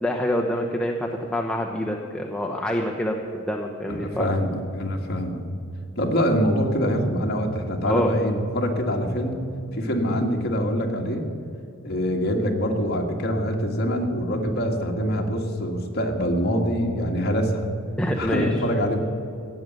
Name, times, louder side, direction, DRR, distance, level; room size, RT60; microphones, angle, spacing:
voice 1, 0.0-4.3 7.8-8.1 18.0-18.5, equal, 5° left, 0 dB, 0.8 m, -26 dB
voice 2, 3.9-5.4 6.0-9.4 9.7-11.2 11.8-17.7 18.2-19.0, equal, 50° left, 1 dB, 1.8 m, -24 dB
16.0 x 7.8 x 9.3 m, 2.8 s
head